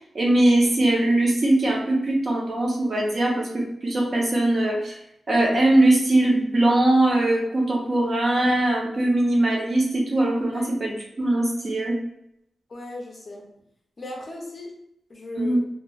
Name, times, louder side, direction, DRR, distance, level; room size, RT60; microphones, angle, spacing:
voice 1, 0.1-5.0 5.3-12.0 15.4-15.6, right 1 dB, 40° right, -2 dB, 0.6 m, -21 dB
voice 2, 12.7-13.4 14.0-14.7 15.1-15.6, left 2 dB, 35° left, -1 dB, 0.6 m, -37 dB
3.0 x 2.2 x 2.3 m, 0.76 s
wide cardioid pair, 165°, 0 cm